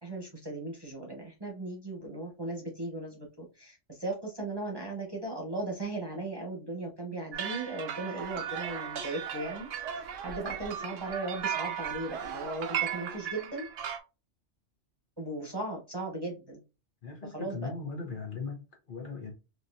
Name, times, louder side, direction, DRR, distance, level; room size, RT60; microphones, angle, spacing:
voice 1, 0.0-13.7 15.2-16.6 17.2-17.7, right 2 dB, 20° right, 1.0 m, -37 dB
sound 1, 7.3-14.0, right 9 dB, 65° right, 0.8 m, -37 dB
sound 2, 8.2-13.2, right 6 dB, 85° right, 1.0 m, -42 dB
voice 2, 17.0-19.3, left 4 dB, 45° left, 1.1 m, -39 dB
4.3 x 2.7 x 2.6 m
omnidirectional pair, 1.3 m